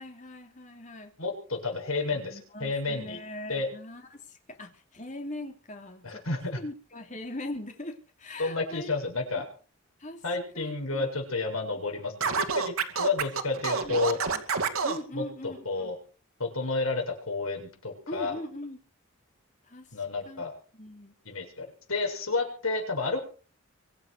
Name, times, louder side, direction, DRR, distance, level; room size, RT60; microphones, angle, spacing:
voice 1, 0.0-1.1 2.1-6.3 6.6-8.9 10.0-10.2 10.5-11.1 13.0-13.1 13.8-14.4 14.8-15.9 18.1-18.8 19.7-19.9 20.2-20.4 20.7-21.1, left 1 dB, 35° left, 5 dB, 3.1 m, -41 dB
voice 2, 1.2-3.2 3.5-3.7 6.0-6.6 8.4-9.5 10.2-14.2 15.1-16.0 16.4-18.3 19.9-20.5 21.2-23.2, left 3 dB, 75° left, 2 dB, 7.5 m, -31 dB
Scratching (performance technique), 12.2-15.0, right 5 dB, 80° right, 2.4 m, -28 dB
24.5 x 8.4 x 6.8 m, 0.40 s
head